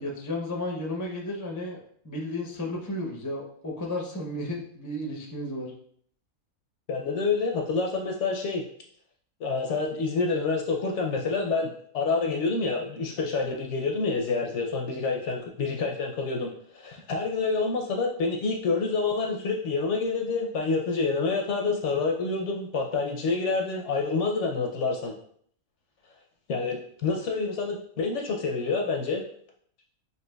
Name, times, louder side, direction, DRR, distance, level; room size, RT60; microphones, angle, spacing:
voice 1, 0.0-1.8 2.0-5.7, left 1 dB, 25° left, -1 dB, 0.3 m, -33 dB
voice 2, 6.9-8.6 9.4-25.1 26.5-29.2, left 4 dB, 65° left, 1 dB, 0.8 m, -28 dB
5.7 x 2.7 x 2.2 m, 0.62 s
omnidirectional pair, 1.5 m